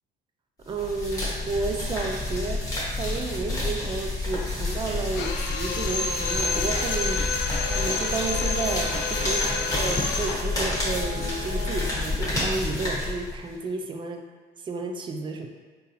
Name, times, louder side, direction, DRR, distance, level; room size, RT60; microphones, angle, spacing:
sound 1, 0.7-13.5, left 2 dB, 20° left, 1.2 m, -29 dB
voice 1, 0.7-7.5 7.7-14.2 14.6-15.5, right 3 dB, 30° right, 4 dB, 0.4 m, -32 dB
Drill, 5.2-10.5, left 4 dB, 85° left, 0.4 m, -29 dB
Brass instrument, 7.5-12.0, left 2 dB, 80° right, 0.6 m, -40 dB
3.9 x 2.7 x 2.6 m, 1.5 s
cardioid pair, 110°, 17 cm